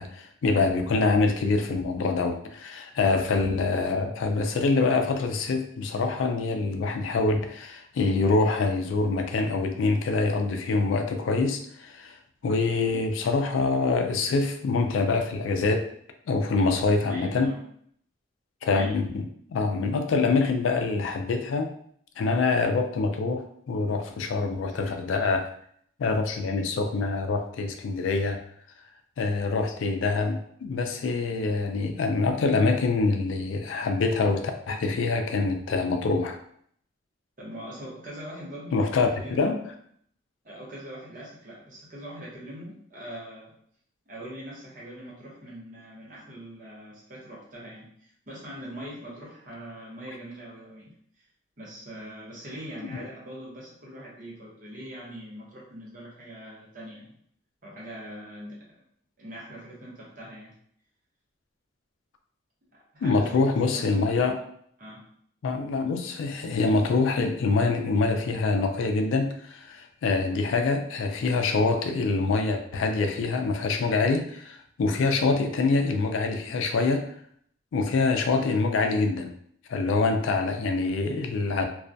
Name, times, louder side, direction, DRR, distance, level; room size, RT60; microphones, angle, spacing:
voice 1, 0.0-12.1 12.4-15.9 16.3-17.5 18.6-21.7 22.2-25.5 26.0-28.4 29.2-36.4 38.7-39.6 52.9-53.0 63.0-64.3 65.4-77.1 77.7-79.3 79.7-81.6, left 3 dB, 85° left, 6 dB, 0.3 m, -25 dB
voice 2, 17.1-17.6 18.8-19.0 37.4-39.7 40.4-43.5 44.1-50.9 51.6-57.1 57.6-58.8 59.2-60.6 62.9-64.1 64.8-65.0, equal, 45° right, -5 dB, 0.8 m, -42 dB
2.3 x 2.1 x 2.5 m, 0.64 s
head